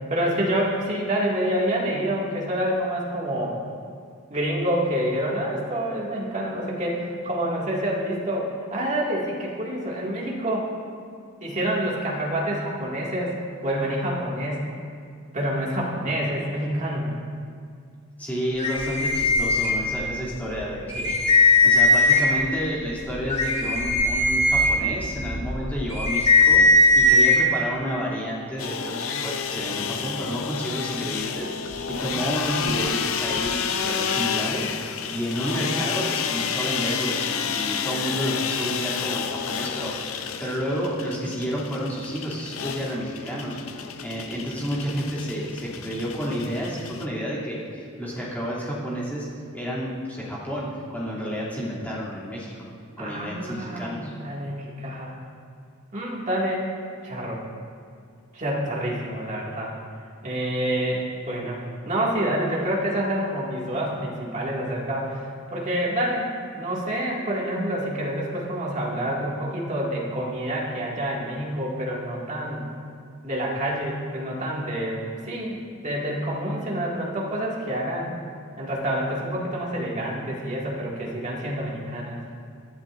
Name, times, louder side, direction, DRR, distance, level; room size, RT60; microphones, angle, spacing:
voice 1, 0.0-3.6 4.3-10.7 11.4-13.3 13.6-14.7 15.3-17.1 53.0-55.2 55.9-56.6 57.0-57.4 58.3-59.7 60.2-72.7 73.2-78.2 78.6-82.2, right 1 dB, 35° right, -4 dB, 2.1 m, -27 dB
voice 2, 18.2-43.6 44.0-49.3 49.5-52.5 53.0-54.1, equal, 10° left, -8 dB, 2.8 m, -30 dB
sound 1, 18.6-20.2 20.6-20.7 20.9-22.4 23.0-27.4, left 2 dB, 30° left, 2.0 m, -19 dB
sound 2, 28.6-47.1, left 7 dB, 70° left, 0.6 m, -30 dB
19.5 x 11.5 x 2.6 m, 2.3 s
head